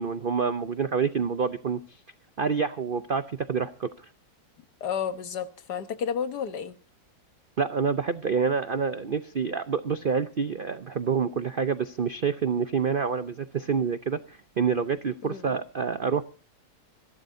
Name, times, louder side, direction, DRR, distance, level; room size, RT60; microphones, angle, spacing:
voice 1, 0.0-1.8 2.4-3.9 7.6-16.2, right 6 dB, 80° right, 11 dB, 0.4 m, -27 dB
voice 2, 4.8-6.7 15.2-15.4, left 7 dB, 65° left, 10 dB, 1.7 m, -31 dB
27.5 x 12.0 x 2.7 m, 0.37 s
omnidirectional pair, 2.0 m